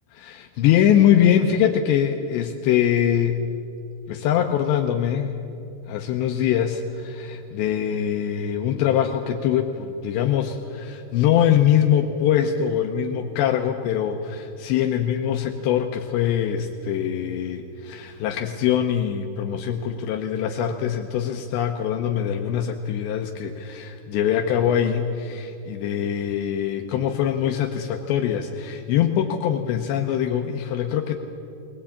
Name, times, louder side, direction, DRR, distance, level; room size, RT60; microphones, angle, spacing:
voice 1, 0.2-3.5 4.1-5.3 5.9-31.2, left 9 dB, 80° left, 4 dB, 2.9 m, -23 dB
21.0 x 20.0 x 8.5 m, 2.7 s
omnidirectional pair, 5.5 m